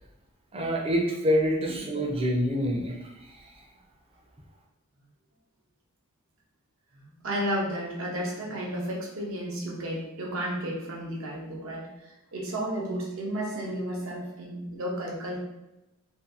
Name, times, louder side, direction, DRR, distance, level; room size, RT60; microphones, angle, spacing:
voice 1, 0.5-3.0, equal, 25° right, 0 dB, 0.4 m, -26 dB
voice 2, 6.9-11.9 12.3-15.4, right 1 dB, 65° right, -2 dB, 0.7 m, -32 dB
2.7 x 2.6 x 2.4 m, 0.94 s
head